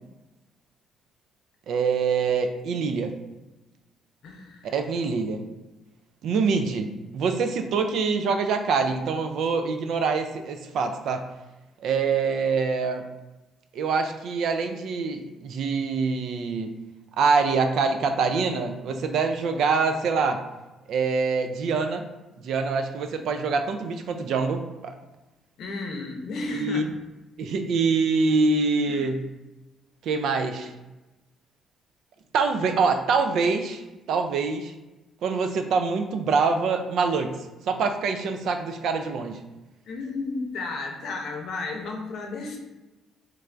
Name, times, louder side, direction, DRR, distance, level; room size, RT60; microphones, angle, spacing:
voice 1, 1.7-3.2 4.6-5.4 6.2-11.3 11.8-13.1 13.7-16.7 17.2-20.4 20.9-22.1 22.4-24.9 26.5-26.8 27.4-29.2 30.0-30.7 32.3-33.8 34.1-34.7 35.2-37.4 37.7-39.4, right 4 dB, 70° right, 6 dB, 0.4 m, -25 dB
voice 2, 4.2-4.8 25.6-26.8 28.8-29.1 39.8-42.6, left 3 dB, 70° left, 2 dB, 0.6 m, -33 dB
3.2 x 2.5 x 3.3 m, 1.1 s
cardioid pair, 95°, 0 cm